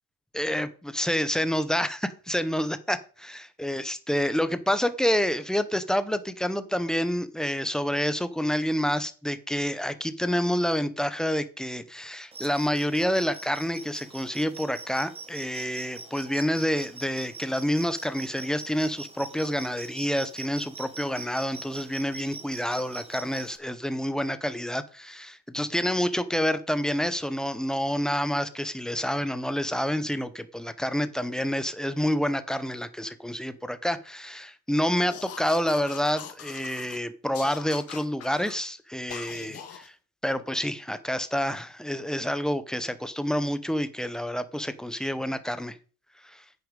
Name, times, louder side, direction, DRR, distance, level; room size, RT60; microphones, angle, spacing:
voice 1, 0.3-39.9 40.2-45.8 46.2-46.4, equal, ahead, 0.6 m, -28 dB
sound 1, 12.3-23.6, right 3 dB, 15° right, 1.1 m, -43 dB
sound 2, 35.1-37.0 37.3-38.6 39.1-39.9, left 9 dB, 40° left, 1.8 m, -42 dB
9.8 x 9.6 x 5.2 m
cardioid pair, 175°, 37 cm